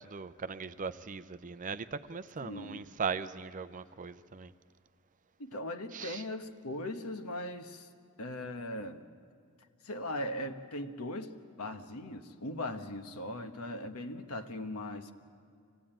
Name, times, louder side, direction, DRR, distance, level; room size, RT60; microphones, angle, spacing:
voice 1, 0.0-4.5 5.9-6.2, right 5 dB, 35° right, 0.5 m, -39 dB
voice 2, 2.4-2.9 5.4-7.9 8.2-9.0 9.8-15.1, left 1 dB, 70° left, 1.2 m, -39 dB
25.0 x 17.0 x 8.9 m
head